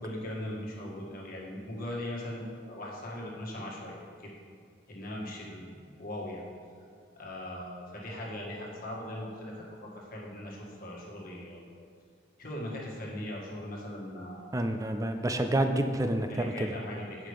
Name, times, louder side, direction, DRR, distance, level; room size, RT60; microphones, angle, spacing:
voice 1, 0.0-4.3 4.9-6.4 7.2-11.6 12.4-14.4 16.3-17.3, left 1 dB, 50° left, -3 dB, 1.6 m, -39 dB
voice 2, 14.5-16.7, right 1 dB, 15° right, 6 dB, 0.5 m, -28 dB
8.8 x 5.8 x 4.8 m, 2.1 s
head